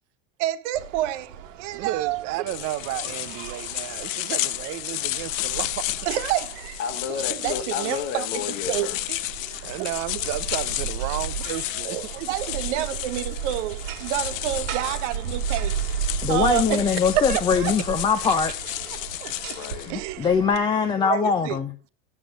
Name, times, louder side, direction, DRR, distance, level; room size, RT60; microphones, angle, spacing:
voice 1, 0.4-2.4 6.1-6.8 7.3-8.3 8.7-8.9 11.8-15.8 16.3-16.9 17.1-17.8 19.2-19.3 19.9-20.3 21.0-21.6, right 14 dB, 65° right, 0.9 m, -28 dB
sound 1, 0.7-20.6, right 7 dB, 90° right, 1.3 m, -35 dB
voice 2, 1.7-5.8 9.1-9.3 9.6-12.8 18.2-18.3 20.9-21.0 21.4-21.5, right 14 dB, 45° right, 0.6 m, -33 dB
sound 2, 2.5-19.9, left 17 dB, 90° left, 0.5 m, -32 dB
voice 3, 6.8-9.0 19.5-19.9, left 7 dB, 75° left, 1.6 m, -32 dB
voice 4, 16.2-18.5 19.9-21.7, left 6 dB, 15° left, 0.4 m, -22 dB
7.8 x 6.2 x 5.2 m
supercardioid pair, 130°, 38 cm